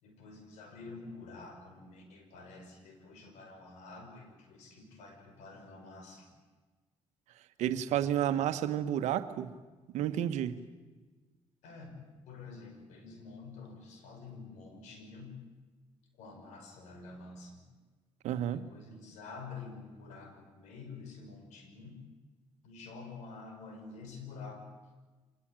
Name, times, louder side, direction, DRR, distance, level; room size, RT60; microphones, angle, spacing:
voice 1, 0.0-6.3 11.6-15.4 16.2-17.7 18.5-22.0 22.6-24.6, left 4 dB, 90° left, 5 dB, 5.7 m, -48 dB
voice 2, 7.6-9.5 9.9-10.6 18.2-18.6, right 11 dB, 85° right, 10 dB, 1.4 m, -31 dB
25.0 x 20.0 x 9.1 m, 1.3 s
cardioid pair, 80°, 12 cm